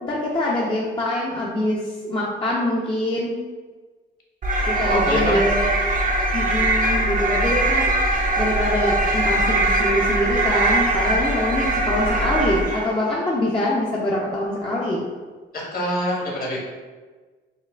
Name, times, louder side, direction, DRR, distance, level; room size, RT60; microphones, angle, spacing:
voice 1, 0.0-3.3 4.6-5.6 6.3-7.9 8.4-15.0, left 1 dB, 25° left, -5 dB, 0.6 m, -24 dB
sound 1, 4.4-13.0, right 1 dB, 40° right, 0.6 m, -21 dB
voice 2, 4.7-5.4 15.5-16.6, left 1 dB, 50° left, -3 dB, 1.2 m, -25 dB
5.5 x 2.3 x 2.4 m, 1.3 s
cardioid pair, 90°, 20 cm